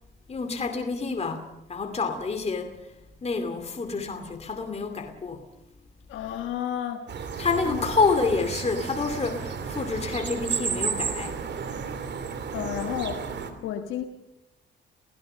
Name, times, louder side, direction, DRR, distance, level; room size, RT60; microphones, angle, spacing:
voice 1, 0.3-2.9 3.2-5.5 7.4-11.4, left 4 dB, 30° left, 2.5 m, -28 dB
voice 2, 6.1-7.1 7.7-7.8 12.5-14.0, left 10 dB, 90° left, 1.5 m, -32 dB
sound 1, 7.1-13.5, right 6 dB, 60° right, 2.9 m, -32 dB
29.0 x 16.5 x 6.8 m
cardioid pair, 90°, 20 cm